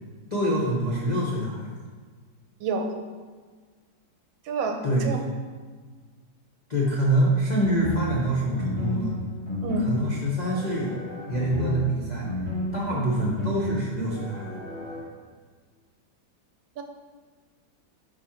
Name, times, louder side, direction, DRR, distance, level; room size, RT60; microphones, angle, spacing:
voice 1, 0.3-1.7 4.8-5.1 6.7-9.1 9.8-10.9 11.3-12.3 12.7-14.5, right 1 dB, 65° left, -4 dB, 0.4 m, -25 dB
voice 2, 2.6-2.9 4.4-5.2 9.6-9.8 12.9-13.0 16.8-16.9, right 3 dB, 80° right, 4 dB, 1.4 m, -29 dB
sound 1, 7.6-15.0, equal, 15° left, 1.5 m, -33 dB
5.1 x 4.8 x 4.3 m, 1.5 s
omnidirectional pair, 2.1 m